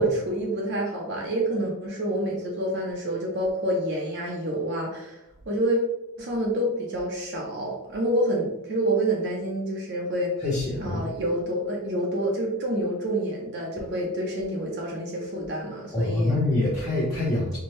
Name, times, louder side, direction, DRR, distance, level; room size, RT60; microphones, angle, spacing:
voice 1, 0.0-5.2 5.5-5.8 6.2-10.4 10.8-16.4, right 1 dB, 50° right, -1 dB, 0.6 m, -27 dB
voice 2, 10.4-11.1 15.9-17.6, left 2 dB, ahead, -10 dB, 0.9 m, -25 dB
4.3 x 2.2 x 3.2 m, 0.89 s
head